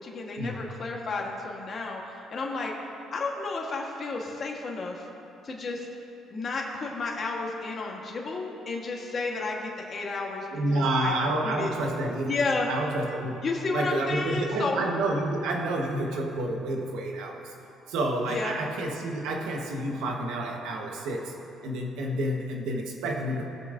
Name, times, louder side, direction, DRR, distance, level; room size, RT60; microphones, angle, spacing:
voice 1, 0.0-2.7 3.1-5.1 5.4-5.9 6.3-11.1 11.4-11.7 12.2-12.7 13.4-14.9 18.3-18.5, left 3 dB, 45° left, -1 dB, 1.3 m, -32 dB
voice 2, 10.5-12.4 12.7-13.3 13.7-17.4 17.9-21.3 21.6-23.4, right 1 dB, 80° right, 1 dB, 1.2 m, -29 dB
19.0 x 7.0 x 2.6 m, 2.8 s
cardioid pair, 85°, 0 cm